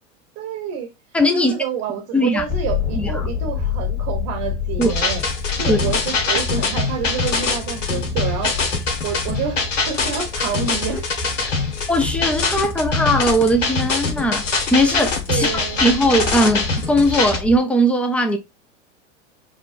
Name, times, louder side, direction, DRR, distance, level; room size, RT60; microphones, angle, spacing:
voice 1, 0.4-0.9 1.3-5.2 5.6-8.6 9.0-11.0 15.3-15.8, right 7 dB, 45° right, 0.9 m, -28 dB
voice 2, 1.1-1.5 2.1-2.4 3.0-3.3 4.8-4.9 5.7-5.8 10.9-11.0 11.9-18.4, equal, 5° left, 0.4 m, -19 dB
sound 1, 2.4-17.6, left 5 dB, 20° left, 1.5 m, -29 dB
sound 2, 4.8-17.4, left 4 dB, 85° left, 1.0 m, -23 dB
4.9 x 2.2 x 2.5 m
hypercardioid pair, 95°, 37 cm